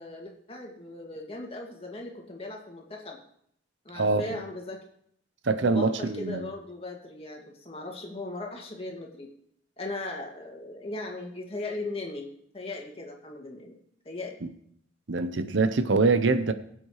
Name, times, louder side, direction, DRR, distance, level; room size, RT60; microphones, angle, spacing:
voice 1, 0.0-3.2 3.8-4.8 5.6-9.3 9.8-13.8 14.1-14.3, left 2 dB, 30° left, 0 dB, 2.1 m, -38 dB
voice 2, 5.4-6.5 15.1-16.5, right 3 dB, 70° right, 11 dB, 0.7 m, -24 dB
22.0 x 7.8 x 3.2 m, 0.68 s
head